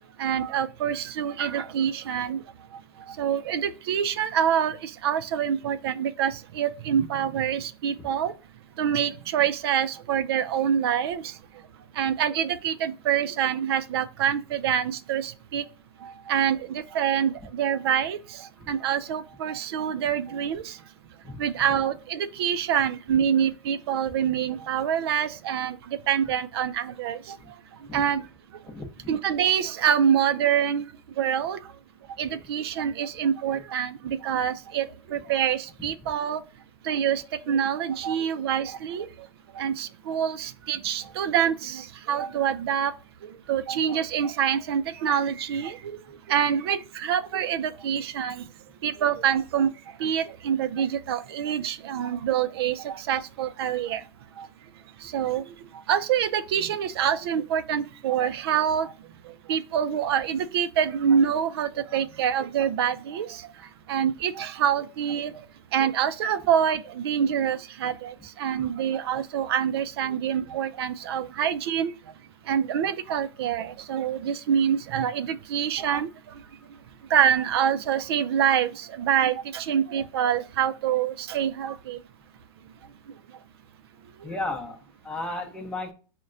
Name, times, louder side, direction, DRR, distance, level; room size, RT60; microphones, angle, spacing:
voice 1, 0.2-2.4 3.2-8.3 8.8-11.2 12.0-15.6 16.0-18.2 18.7-20.7 21.4-25.8 26.1-27.4 27.9-28.2 29.1-30.8 31.2-31.6 32.2-36.4 36.9-39.1 39.6-42.9 43.5-45.8 46.3-48.4 48.8-49.7 50.0-54.0 54.4-54.5 55.1-55.4 55.9-58.9 59.5-63.3 63.9-65.3 65.7-71.9 72.5-76.1 77.1-82.0, right 9 dB, 65° right, 0.4 m, -26 dB
voice 2, 28.7-29.1 35.8-35.9 84.2-85.9, left 2 dB, 10° left, 0.6 m, -35 dB
6.4 x 2.1 x 2.5 m
hypercardioid pair, 135°, 14 cm